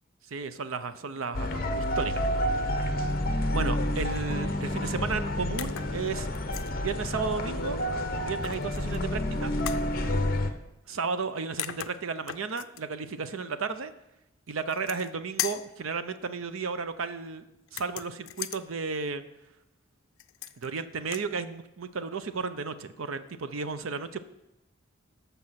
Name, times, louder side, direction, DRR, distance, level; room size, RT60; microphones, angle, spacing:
voice 1, 0.3-2.2 2.5-3.0 3.5-6.3 6.8-7.8 8.2-9.5 10.9-13.9 14.5-17.5 17.7-19.2 20.6-24.2, right 4 dB, 90° right, 11 dB, 0.6 m, -33 dB
sound 1, 1.3-10.5, left 1 dB, 45° left, 1.0 m, -29 dB
sound 2, 5.6-5.9 6.3-6.7 8.4-9.0 9.6-9.9 11.2-11.3 11.6-12.8 14.6-15.1 15.4-15.7 17.7-18.6 20.2-20.7 21.0-21.3, left 12 dB, 85° left, 0.5 m, -37 dB
14.0 x 5.5 x 5.7 m, 0.89 s
head